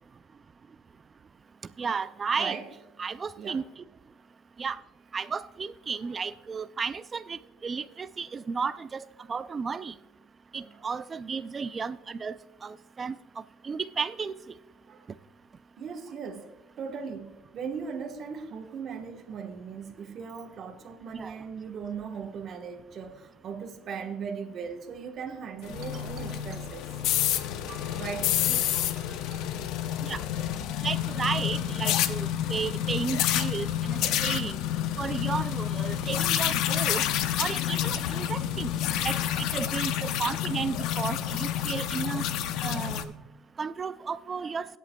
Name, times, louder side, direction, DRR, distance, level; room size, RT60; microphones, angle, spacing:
voice 1, 1.8-2.6 3.0-3.6 4.6-4.8 5.1-9.0 9.3-9.9 10.5-12.3 12.6-13.1 13.6-14.3 21.1-21.3 28.5-28.6 30.0-30.2 30.8-34.6 35.0-37.0 37.4-38.7 39.0-42.2 42.6-43.1 43.6-44.7, right 5 dB, 25° right, 0.3 m, -33 dB
voice 2, 15.8-26.9 27.2-29.6 38.9-39.0 43.2-43.3, right 6 dB, 40° right, 1.2 m, -39 dB
sound 1, 25.6-43.0, left 11 dB, 65° left, 0.6 m, -29 dB
22.0 x 8.3 x 2.2 m
cardioid pair, 145°, 0 cm